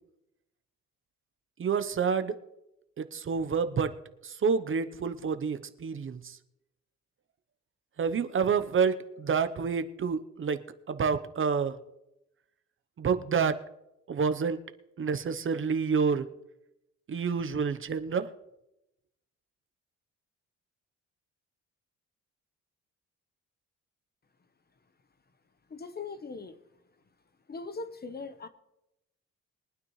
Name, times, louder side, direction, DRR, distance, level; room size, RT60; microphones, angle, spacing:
voice 1, 1.6-2.4 3.0-4.0 4.2-6.4 8.0-11.8 13.0-13.6 14.1-14.6 15.0-16.3 17.1-18.3, right 6 dB, 40° right, 11 dB, 0.9 m, -28 dB
voice 2, 25.7-26.6 27.5-28.5, left 4 dB, 30° left, 11 dB, 1.0 m, -40 dB
23.0 x 9.4 x 3.2 m, 0.88 s
cardioid pair, 90°, 30 cm